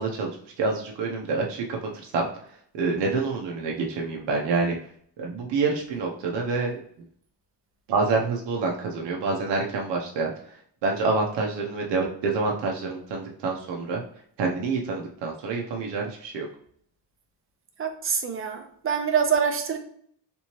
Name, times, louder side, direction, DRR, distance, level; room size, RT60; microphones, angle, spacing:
voice 1, 0.0-2.3 2.7-4.8 5.2-6.8 7.9-14.0 14.4-16.5, right 4 dB, 85° right, 0 dB, 0.7 m, -27 dB
voice 2, 17.8-19.8, right 7 dB, 30° right, 5 dB, 0.5 m, -25 dB
3.4 x 2.8 x 3.0 m, 0.62 s
cardioid pair, 140°, 42 cm